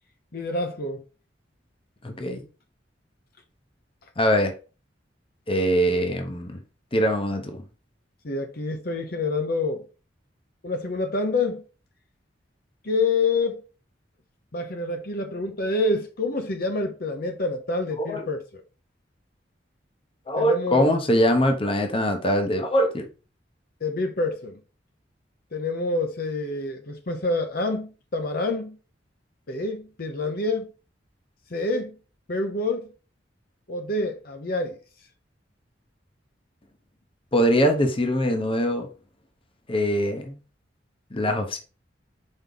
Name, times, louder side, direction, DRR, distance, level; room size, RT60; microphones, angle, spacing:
voice 1, 0.3-1.0 8.2-9.8 10.6-11.6 12.8-13.6 14.5-18.6 20.4-20.9 23.8-24.6 25.5-28.8 29.5-30.7 31.5-31.9 32.3-32.9 33.7-34.8, left 2 dB, 55° left, 0.9 m, -27 dB
voice 2, 2.0-2.4 4.2-4.5 5.5-6.5 6.9-7.6 18.0-18.2 20.3-23.0 37.3-38.9 39.7-40.4 41.1-41.6, equal, 30° left, 0.9 m, -22 dB
5.4 x 4.3 x 4.0 m
head